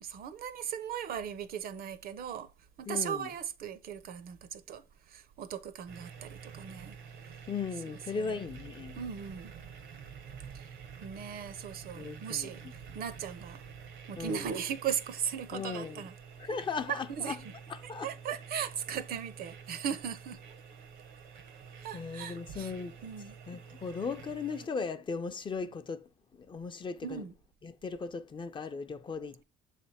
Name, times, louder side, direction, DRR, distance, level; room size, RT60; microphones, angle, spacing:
voice 1, 0.0-2.5 2.8-7.0 8.1-8.4 9.0-9.5 10.5-10.7 11.0-13.6 14.1-16.2 16.5-16.6 16.9-17.5 18.0-20.4 21.8-22.7 23.0-23.3 27.0-27.3, right 8 dB, 60° right, 0.7 m, -38 dB
voice 2, 2.9-3.3 7.5-9.0 11.9-12.5 14.2-14.5 15.5-16.0 16.4-17.4 17.7-18.1 21.9-22.9 23.5-26.1 26.4-27.2 27.6-29.4, left 5 dB, 30° left, 0.5 m, -37 dB
sound 1, 5.9-24.7, right 6 dB, 85° right, 1.1 m, -49 dB
6.9 x 3.3 x 4.1 m
cardioid pair, 110°, 17 cm